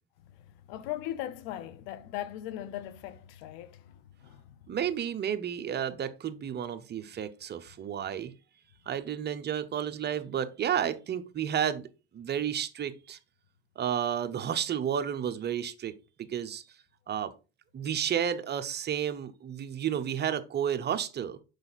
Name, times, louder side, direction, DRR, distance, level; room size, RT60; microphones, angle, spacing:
voice 1, 0.3-4.6, left 12 dB, 80° left, 0.9 m, -39 dB
voice 2, 4.7-8.3 8.9-11.9 12.1-13.2 13.8-16.6 17.1-17.3 17.7-21.4, right 9 dB, 35° right, 0.9 m, -31 dB
6.6 x 4.9 x 4.1 m
supercardioid pair, 95°, 30 cm